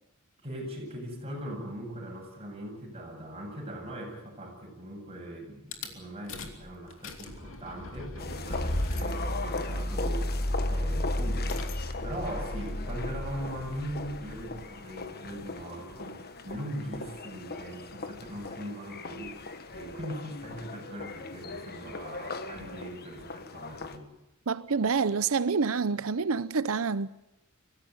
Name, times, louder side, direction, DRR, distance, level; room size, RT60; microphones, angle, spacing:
voice 1, 0.4-11.6 12.0-24.1, equal, 30° right, 8.0 m, -40 dB
Rattle / Car / Engine starting, 5.7-5.9 6.3-6.6 6.9-14.6, left 1 dB, 65° left, 2.9 m, -33 dB
sound 1, 8.2-24.0, left 3 dB, 50° left, 1.5 m, -40 dB
voice 2, 24.5-27.1, right 5 dB, 70° right, 0.7 m, -27 dB
24.0 x 16.0 x 9.5 m
head